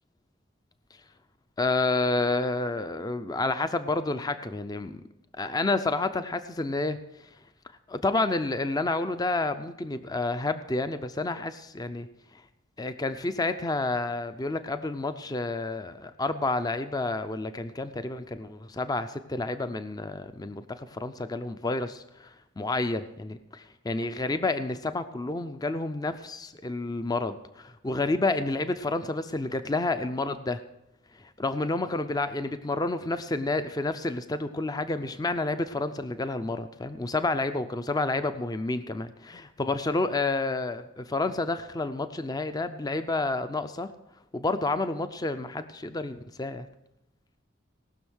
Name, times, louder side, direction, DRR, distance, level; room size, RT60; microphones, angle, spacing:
voice 1, 1.6-5.0 5.4-7.0 7.9-12.1 12.8-30.6 31.2-43.9 44.3-46.7, left 2 dB, 20° left, 10 dB, 0.4 m, -29 dB
18.5 x 6.3 x 6.3 m, 0.91 s
head